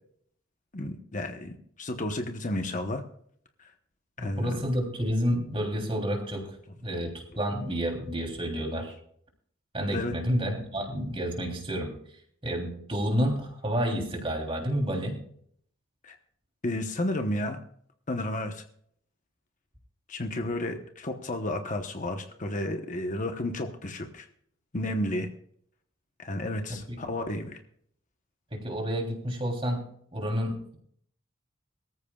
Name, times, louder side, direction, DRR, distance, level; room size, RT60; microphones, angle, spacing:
voice 1, 0.7-3.0 3.6-3.7 4.2-4.6 9.9-10.1 16.0-16.2 16.6-17.6 18.1-18.6 20.1-24.3 24.7-25.3 26.2-27.6, left 1 dB, 40° left, 5 dB, 1.1 m, -32 dB
voice 2, 4.2-6.5 6.8-8.9 9.7-11.9 12.4-15.2 26.7-27.0 28.5-29.8 30.1-30.8, equal, 25° right, 1 dB, 3.3 m, -30 dB
23.0 x 14.0 x 2.4 m, 0.64 s
head